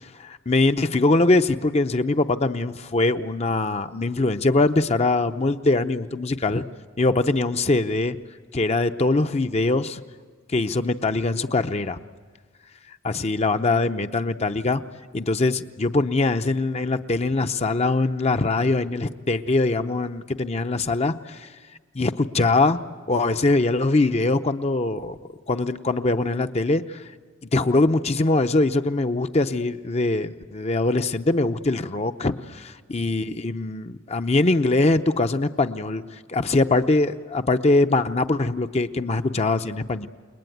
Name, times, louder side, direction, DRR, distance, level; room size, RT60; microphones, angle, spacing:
voice 1, 0.2-6.6 7.0-8.2 8.5-10.0 10.5-12.0 13.0-14.8 15.1-21.5 21.9-22.8 23.1-25.2 25.5-27.0 27.5-36.0 36.3-40.1, left 2 dB, 35° left, 8 dB, 0.7 m, -22 dB
29.0 x 20.5 x 9.3 m, 1.5 s
head